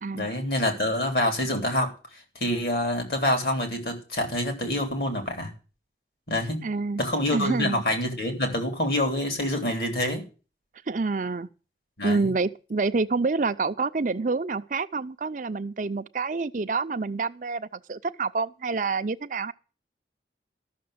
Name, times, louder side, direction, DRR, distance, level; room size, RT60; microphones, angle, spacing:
voice 1, 0.1-1.9 2.4-5.5 6.3-6.6 7.0-10.2 12.0-12.3, left 1 dB, 60° left, 3.3 m, -26 dB
voice 2, 6.6-7.0 7.3-7.8 10.9-11.5 12.0-19.5, right 3 dB, 45° right, 0.5 m, -27 dB
13.0 x 6.5 x 7.7 m
head